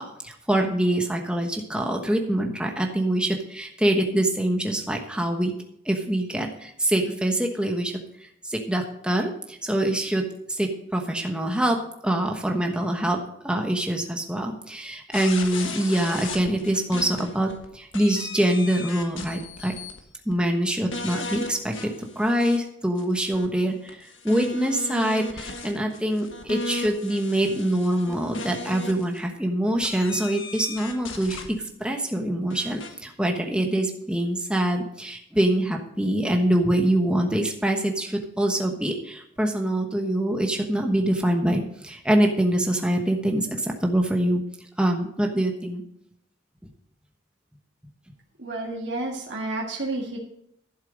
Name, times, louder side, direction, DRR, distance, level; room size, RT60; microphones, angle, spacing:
voice 1, 0.0-5.5 5.8-7.9 8.4-13.2 13.4-19.8 20.3-21.8 22.2-44.4 44.8-45.8, right 1 dB, 5° right, 2 dB, 1.1 m, -24 dB
sound 1, 15.1-17.7 17.9-20.0 20.3-20.4 20.9-22.6 23.0-29.2 29.8-31.5 32.5-32.9, left 3 dB, 80° left, 1.5 m, -36 dB
voice 2, 48.4-50.2, right 2 dB, 65° right, -2 dB, 1.9 m, -30 dB
12.0 x 7.5 x 5.1 m, 0.73 s
head